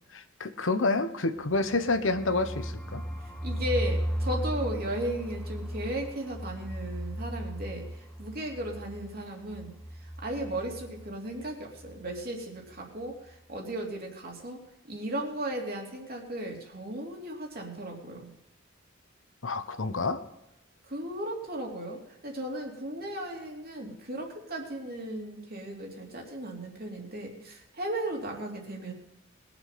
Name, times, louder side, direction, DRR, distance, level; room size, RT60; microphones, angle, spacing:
voice 1, 0.1-3.0 19.4-20.2, left 3 dB, 80° left, 9 dB, 1.1 m, -28 dB
sound 1, 1.4-11.1 11.4-11.5 11.8-12.2, equal, 5° left, 1.2 m, -36 dB
voice 2, 3.2-14.6 14.9-18.3 20.9-28.9, right 1 dB, 50° right, 0 dB, 3.0 m, -36 dB
21.0 x 7.2 x 5.8 m, 0.90 s
head